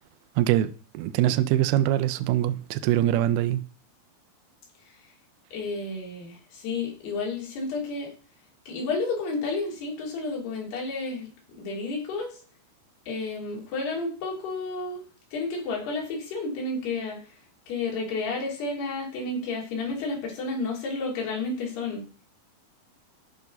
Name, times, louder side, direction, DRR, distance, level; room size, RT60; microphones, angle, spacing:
voice 1, 0.4-3.6, right 13 dB, 80° right, 2.5 m, -23 dB
voice 2, 5.5-8.1 8.7-12.3 13.1-15.0 15.3-17.2 17.7-22.0, left 3 dB, 75° left, 4.8 m, -31 dB
13.5 x 5.4 x 4.0 m
omnidirectional pair, 4.6 m